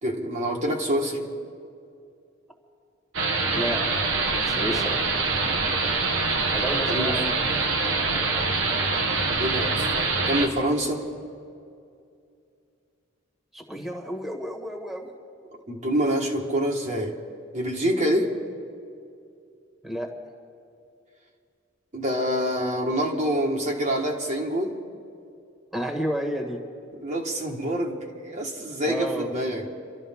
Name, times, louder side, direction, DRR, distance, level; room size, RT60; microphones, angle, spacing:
voice 1, 0.0-1.2 6.9-7.2 9.4-9.9 10.3-11.0 15.7-17.1 17.5-18.3 21.9-24.7 27.0-29.7, equal, 40° right, -2 dB, 1.6 m, -26 dB
sound 1, 3.1-10.5, right 3 dB, 80° right, 1.5 m, -24 dB
voice 2, 3.5-3.8 4.3-5.0 6.5-7.4 13.5-15.1 19.8-20.1 25.7-26.6 28.9-29.3, equal, ahead, 0 dB, 1.8 m, -31 dB
29.5 x 12.5 x 3.7 m, 2.4 s
head